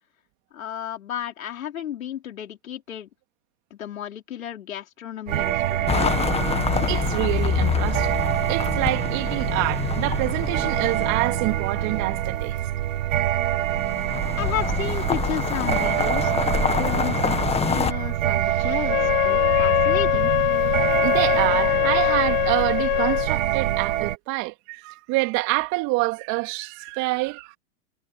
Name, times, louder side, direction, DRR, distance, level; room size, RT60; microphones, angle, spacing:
voice 1, 0.5-3.1 3.7-6.1 14.3-20.3, left 10 dB, 75° left, 4.8 m, -33 dB
sound 1, 5.3-24.2, right 13 dB, 70° right, 1.3 m, -26 dB
sound 2, 5.9-12.3 13.5-17.9, left 7 dB, 15° left, 1.6 m, -27 dB
voice 2, 6.9-8.1 8.5-12.5 19.5-19.8 21.0-27.6, right 25 dB, 45° right, 3.3 m, -27 dB
Wind instrument woodwind instrument, 18.8-23.3, left 21 dB, 45° left, 0.6 m, -22 dB
hypercardioid pair, 115°, 41 cm